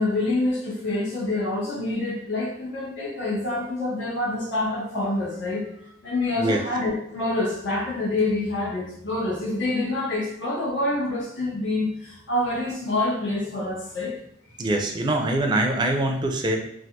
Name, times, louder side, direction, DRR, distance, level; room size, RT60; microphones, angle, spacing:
voice 1, 0.0-14.2 14.6-14.7, left 2 dB, 85° left, -5 dB, 1.2 m, -27 dB
voice 2, 14.6-16.6, right 1 dB, 25° right, 3 dB, 0.4 m, -23 dB
3.4 x 2.4 x 2.7 m, 0.77 s
head